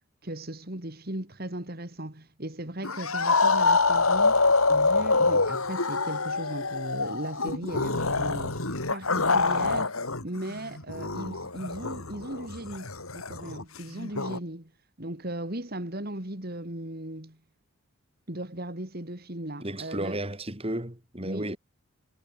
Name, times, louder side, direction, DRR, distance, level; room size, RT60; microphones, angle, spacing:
voice 1, 0.2-4.4 4.7-8.6 8.9-10.0 10.2-14.7 15.0-17.4 18.3-20.2 21.2-21.5, right 1 dB, 45° right, 2.9 m, -37 dB
sound 1, 2.8-10.2 10.5-14.4, left 3 dB, 80° left, 4.1 m, -26 dB
voice 2, 19.6-21.6, right 1 dB, 25° right, 3.9 m, -33 dB
head